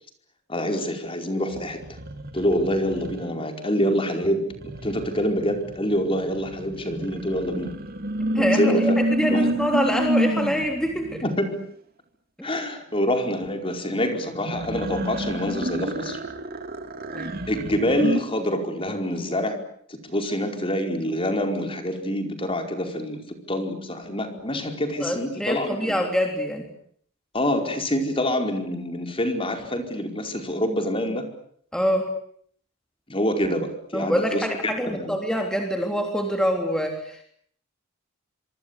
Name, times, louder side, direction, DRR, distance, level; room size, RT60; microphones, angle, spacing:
voice 1, 0.5-1.8 2.3-7.7 8.4-8.9 9.3-9.5 11.2-11.6 12.4-16.2 17.5-19.6 19.9-26.0 27.3-31.3 33.1-35.2, equal, 25° left, 5 dB, 4.8 m, -26 dB
sound 1, 1.5-3.4 4.5-11.3 14.4-18.2, right 1 dB, 45° right, 2.9 m, -29 dB
voice 2, 8.3-11.2 12.4-12.5 17.1-17.4 25.0-26.7 31.7-32.1 33.9-37.2, equal, 5° left, 3 dB, 3.6 m, -25 dB
26.0 x 26.0 x 8.3 m, 0.63 s
head